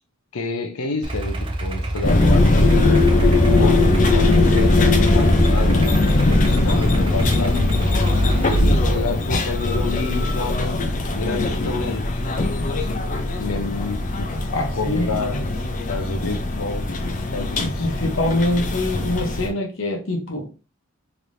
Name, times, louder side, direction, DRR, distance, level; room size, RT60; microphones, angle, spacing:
voice 1, 0.3-3.1 3.6-7.9 8.6-12.2 12.7-14.3 14.7-15.6 15.9-16.9 17.3-17.9, left 3 dB, 85° left, 0.7 m, -30 dB
Idling, 1.0-8.6, right 1 dB, 25° right, 0.5 m, -27 dB
sound 1, 2.0-19.5, left 2 dB, 35° left, 0.5 m, -20 dB
voice 2, 14.5-15.4 16.2-16.3 17.0-20.5, left 1 dB, 60° left, 1.0 m, -25 dB
3.3 x 3.0 x 2.6 m
head